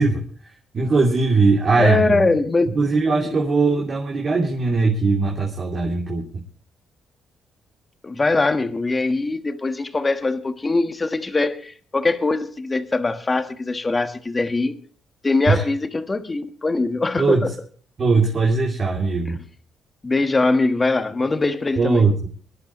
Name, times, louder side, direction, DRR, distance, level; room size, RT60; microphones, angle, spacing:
voice 1, 0.0-2.3 2.7-6.2 15.5-15.6 17.2-17.4 18.0-19.4 21.8-22.3, right 4 dB, 45° right, 3.0 m, -20 dB
voice 2, 1.8-2.8 3.2-3.4 8.0-14.8 15.2-17.5 20.0-22.1, left 3 dB, 25° left, 1.5 m, -22 dB
24.5 x 11.5 x 3.1 m
cardioid pair, 90°, 0 cm